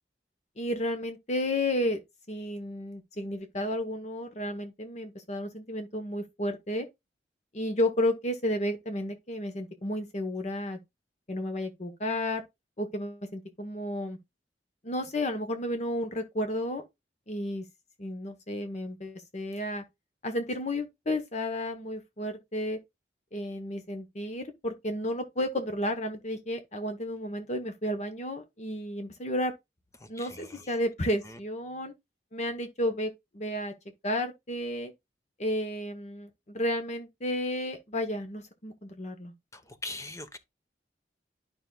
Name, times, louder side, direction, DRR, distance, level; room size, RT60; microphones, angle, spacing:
voice 1, 0.6-2.0 2.3-6.9 7.5-10.8 11.3-12.4 12.8-14.2 14.8-16.8 17.3-17.6 18.0-19.8 20.2-22.8 23.3-29.5 30.1-31.9 32.3-33.7 34.0-34.9 35.4-39.3, left 1 dB, 40° left, 1.1 m, -32 dB
voice 2, 30.0-30.6 39.5-40.4, left 2 dB, 20° left, 1.1 m, -41 dB
11.5 x 5.5 x 2.4 m
head